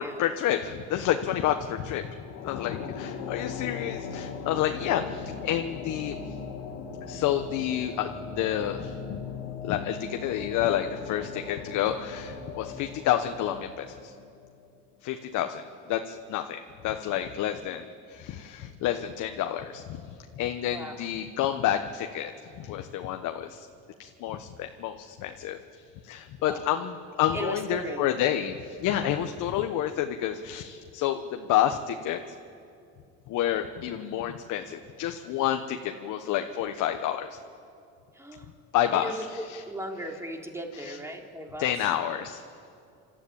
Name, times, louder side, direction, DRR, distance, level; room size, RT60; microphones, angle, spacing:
voice 1, 0.0-2.1 2.4-6.4 7.0-9.2 9.6-14.1 15.0-15.6 15.9-23.7 24.0-32.2 33.3-37.4 38.7-39.6 40.7-41.0 41.6-42.4, left 11 dB, 65° left, 6 dB, 1.2 m, -29 dB
sound 1, 2.1-14.7, left 5 dB, 90° left, 2.5 m, -39 dB
voice 2, 27.3-28.1 38.1-38.5 38.9-41.7, right 1 dB, 10° right, 1 dB, 3.3 m, -37 dB
27.5 x 12.5 x 8.7 m, 2.4 s
supercardioid pair, 90°, 33 cm